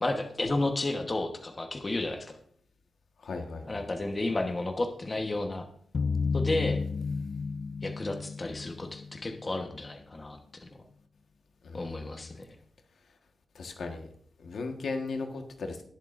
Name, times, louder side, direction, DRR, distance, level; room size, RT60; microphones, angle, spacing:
voice 1, 0.0-2.4 3.6-5.7 6.3-6.8 7.8-10.7 11.7-12.5, left 2 dB, 25° left, 4 dB, 1.2 m, -32 dB
voice 2, 3.2-3.8 11.6-12.3 13.5-14.1 14.4-15.8, left 3 dB, 70° left, 4 dB, 1.4 m, -37 dB
sound 1, 5.9-9.7, left 4 dB, 50° left, 0.3 m, -32 dB
19.5 x 7.5 x 2.6 m, 0.62 s
wide cardioid pair, 125°, 0 cm